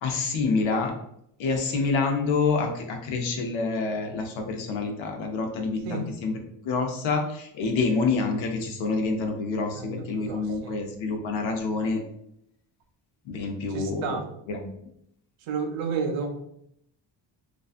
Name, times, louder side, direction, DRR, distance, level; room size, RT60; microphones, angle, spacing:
voice 1, 0.0-0.9 1.4-6.4 6.6-12.0 13.2-14.2 14.5-14.8, left 4 dB, 80° left, 3 dB, 0.7 m, -27 dB
voice 2, 9.7-10.7 13.7-14.2 15.5-16.4, right 5 dB, 85° right, 5 dB, 0.6 m, -31 dB
2.5 x 2.3 x 2.4 m, 0.74 s
cardioid pair, 140°, 46 cm